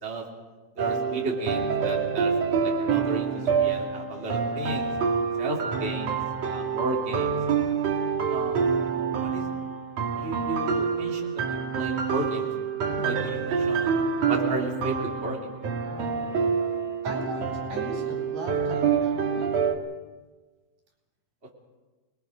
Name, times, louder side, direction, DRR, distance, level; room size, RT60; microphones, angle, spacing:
voice 1, 0.8-2.3 2.6-4.9 5.4-7.4 8.3-9.5 10.2-12.5 13.0-14.0 14.3-15.5, right 2 dB, 20° right, -1 dB, 2.9 m, -33 dB
sound 1, 0.8-19.7, right 6 dB, 55° right, 2.7 m, -27 dB
voice 2, 15.8-16.7 17.0-19.5, right 1 dB, 85° right, 2 dB, 6.1 m, -39 dB
27.5 x 21.0 x 5.1 m, 1.3 s
omnidirectional pair, 3.9 m